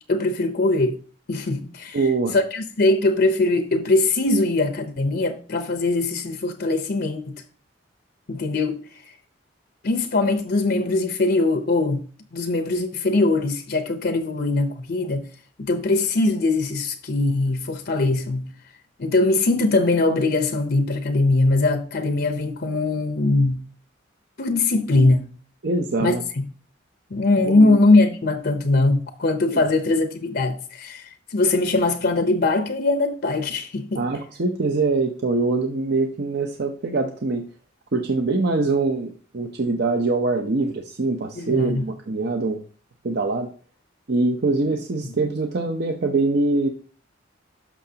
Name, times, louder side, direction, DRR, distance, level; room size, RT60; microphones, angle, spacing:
voice 1, 0.1-1.0 1.3-2.0 2.3-7.4 8.3-9.2 9.8-12.0 12.3-15.3 15.6-18.5 19.0-23.6 24.4-25.3 26.0-26.4 27.1-34.0 41.4-41.9 45.0-45.1, left 2 dB, 55° left, 0.7 m, -21 dB
voice 2, 1.9-2.3 25.6-26.2 27.4-27.8 29.5-29.6 34.0-37.5 37.9-42.6 43.0-43.5 44.1-46.7, right 3 dB, 55° right, 0.7 m, -23 dB
12.5 x 5.8 x 2.8 m
head